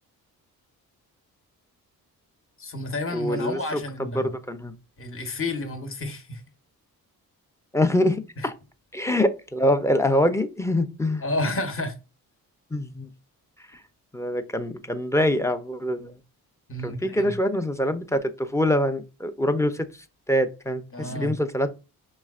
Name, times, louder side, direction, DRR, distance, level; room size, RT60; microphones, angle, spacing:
voice 1, 2.6-4.3 5.0-6.4 8.4-8.5 11.2-11.9 16.7-17.3 20.9-21.4, left 2 dB, 35° left, 1.0 m, -30 dB
voice 2, 3.1-4.7 7.7-8.5 8.9-11.2 12.7-13.1 14.1-16.1 16.8-19.9 20.3-21.7, left 1 dB, 10° left, 0.5 m, -24 dB
5.4 x 3.1 x 2.4 m
cardioid pair, 70°, 38 cm